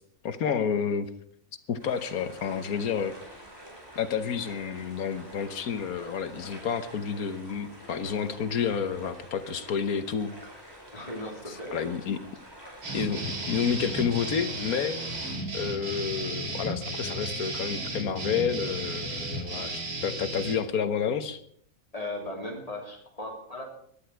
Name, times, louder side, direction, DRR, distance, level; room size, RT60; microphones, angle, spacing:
voice 1, 0.2-1.1 1.7-3.2 3.9-10.3 11.5-12.2 12.9-15.0 15.5-21.4, left 7 dB, 75° left, 11 dB, 1.6 m, -30 dB
sound 1, 1.8-15.3, equal, 15° right, 4.9 m, -47 dB
voice 2, 10.9-11.9 21.9-23.7, left 1 dB, 25° left, 1 dB, 3.1 m, -37 dB
sound 2, 12.8-20.6, right 1 dB, 90° right, 3.0 m, -34 dB
18.0 x 12.0 x 4.6 m, 0.65 s
omnidirectional pair, 1.5 m